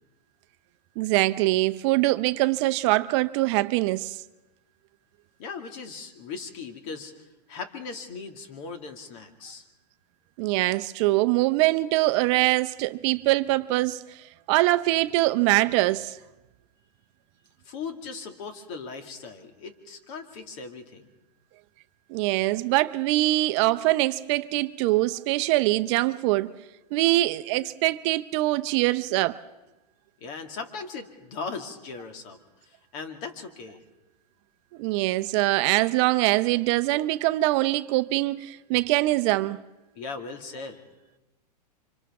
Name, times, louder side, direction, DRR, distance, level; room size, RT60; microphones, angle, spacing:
voice 1, 1.0-4.2 10.4-14.2 14.5-16.2 22.1-26.5 26.9-29.4 34.8-39.6, right 19 dB, 45° right, 0.6 m, -23 dB
voice 2, 5.4-7.1 7.5-9.6 17.6-21.1 30.2-32.4 32.6-33.8 40.0-40.8, left 4 dB, 50° left, 2.4 m, -38 dB
29.0 x 25.0 x 3.7 m
hypercardioid pair, 125°, 21 cm